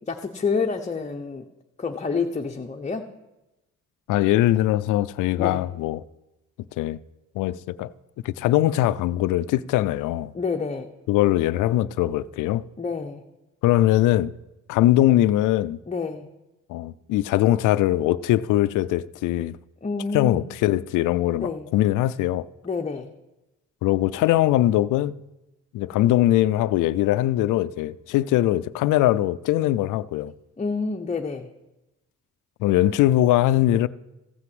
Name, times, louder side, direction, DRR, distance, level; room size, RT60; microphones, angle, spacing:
voice 1, 0.1-1.4 1.8-3.1 5.4-5.6 10.3-10.9 12.8-13.2 15.9-16.3 19.8-20.5 21.4-21.7 22.6-23.1 30.6-31.5, left 4 dB, 25° left, 0.9 m, -28 dB
voice 2, 4.1-6.0 6.8-7.0 7.4-7.9 8.2-10.3 11.1-12.6 13.6-14.3 14.7-15.8 16.7-19.6 20.1-22.5 23.8-25.2 25.7-30.3 32.6-33.9, left 14 dB, 85° left, 0.5 m, -21 dB
15.0 x 5.9 x 7.8 m
cardioid pair, 90°, 30 cm